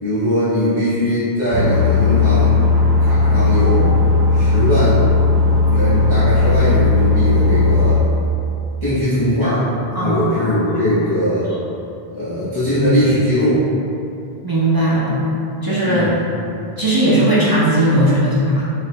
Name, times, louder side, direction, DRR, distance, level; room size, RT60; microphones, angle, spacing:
voice 1, 0.0-2.6 3.0-3.9 4.3-5.0 5.7-8.0 8.8-9.6 10.0-11.5 12.1-13.6 15.8-16.2, equal, 30° left, -14 dB, 0.8 m, -20 dB
sound 1, 1.5-8.0, left 3 dB, 80° right, 0.8 m, -15 dB
voice 2, 9.9-10.8 14.4-15.2 15.6-16.1 16.8-18.6, right 1 dB, 40° right, -8 dB, 0.3 m, -17 dB
3.3 x 3.1 x 2.8 m, 2.7 s
omnidirectional pair, 1.1 m